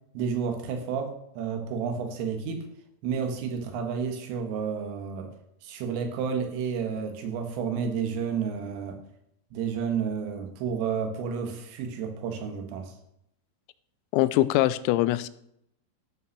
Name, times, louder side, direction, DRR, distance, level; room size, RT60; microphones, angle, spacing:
voice 1, 0.2-2.7 3.0-5.3 5.6-9.0 9.5-12.9, right 6 dB, 80° right, 5 dB, 3.9 m, -31 dB
voice 2, 14.1-15.3, left 16 dB, 90° left, 15 dB, 3.3 m, -23 dB
13.5 x 5.4 x 6.6 m, 0.74 s
omnidirectional pair, 5.9 m